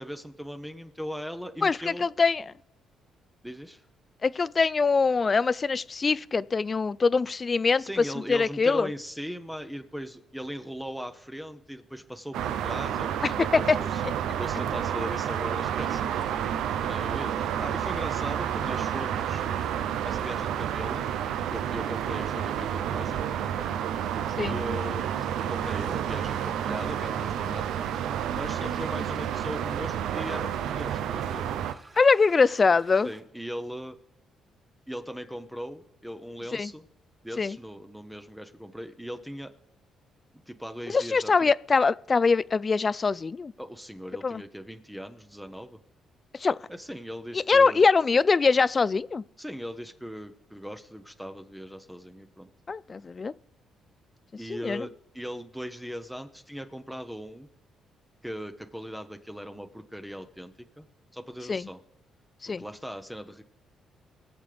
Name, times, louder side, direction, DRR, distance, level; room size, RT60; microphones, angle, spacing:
voice 1, 0.0-2.1 3.4-3.9 7.8-14.0 14.4-19.5 20.0-21.1 21.5-23.7 24.4-25.1 25.5-27.8 28.3-31.5 33.0-34.0 34.9-36.9 37.2-39.5 40.5-41.5 43.6-45.8 46.7-47.8 49.4-52.5 54.4-57.5 58.2-60.9 61.1-61.8 62.6-63.4, equal, 5° right, 0.8 m, -39 dB
voice 2, 1.6-2.4 4.2-7.8 8.3-8.9 13.2-13.8 24.4-24.6 32.0-33.1 36.5-36.7 37.4-37.6 40.9-43.5 44.2-44.4 46.3-46.6 47.3-49.2 52.7-53.3 54.5-54.9 61.5-61.7 62.4-62.6, left 4 dB, 35° left, 0.3 m, -23 dB
sound 1, 12.3-31.7, right 9 dB, 85° right, 0.6 m, -30 dB
sound 2, 15.0-33.2, right 3 dB, 25° right, 3.1 m, -53 dB
22.0 x 7.3 x 3.4 m
cardioid pair, 90°, 0 cm